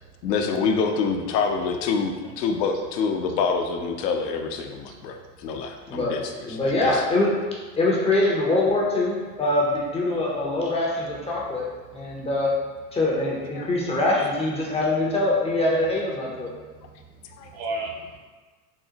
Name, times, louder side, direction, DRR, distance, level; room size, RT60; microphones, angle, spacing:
voice 1, 0.2-7.0 13.5-13.7 17.4-17.5, left 5 dB, 80° left, 4 dB, 0.5 m, -26 dB
voice 2, 6.4-7.3 7.8-11.7 11.9-12.5 12.9-16.5, left 2 dB, 15° left, -4 dB, 0.4 m, -23 dB
voice 3, 16.5-17.0 17.3-18.2, right 2 dB, 50° right, 1 dB, 0.7 m, -34 dB
3.7 x 2.0 x 2.7 m, 1.4 s
hypercardioid pair, 85°, 49 cm